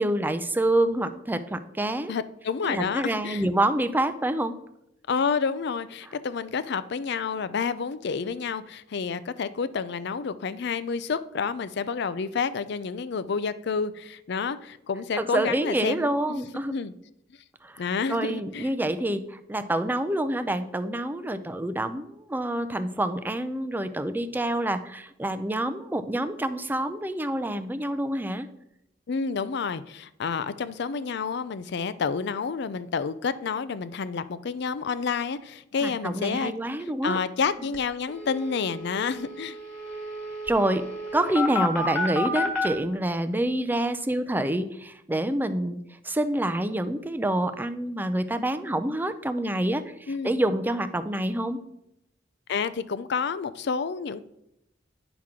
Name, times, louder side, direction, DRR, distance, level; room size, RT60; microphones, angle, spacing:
voice 1, 0.0-2.1 2.6-4.6 15.2-16.7 17.6-17.8 18.1-28.5 35.8-37.2 40.4-40.9 41.1-45.8 46.0-51.6, right 1 dB, 10° right, 11 dB, 0.5 m, -27 dB
voice 2, 2.1-3.4 5.1-16.4 16.7-16.9 17.8-18.7 29.1-36.5 37.0-39.6 50.1-50.3 52.5-54.2, left 5 dB, 60° left, 15 dB, 0.5 m, -29 dB
sound 1, 37.4-37.5 37.7-37.8 38.1-42.7, left 2 dB, 5° left, 1.7 m, -31 dB
10.0 x 6.0 x 3.7 m, 0.81 s
head